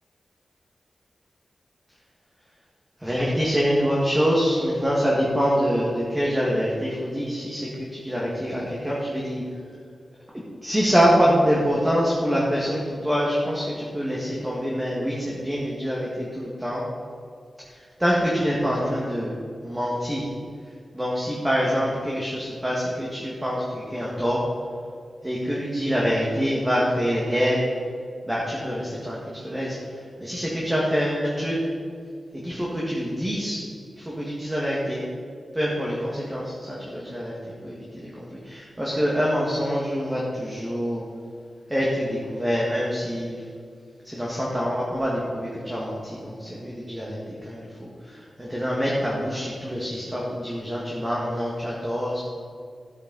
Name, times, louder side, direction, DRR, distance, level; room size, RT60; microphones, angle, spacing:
voice 1, 3.0-9.4 10.3-16.8 18.0-19.4 19.6-20.3 20.9-24.4 25.2-27.6 28.2-29.8 30.2-31.6 32.4-33.6 34.0-35.0 35.5-37.3 37.6-41.0 41.7-43.4 44.0-52.2, equal, 10° right, -5 dB, 1.9 m, -25 dB
14.0 x 8.4 x 4.1 m, 2.2 s
wide cardioid pair, 120°, 0 cm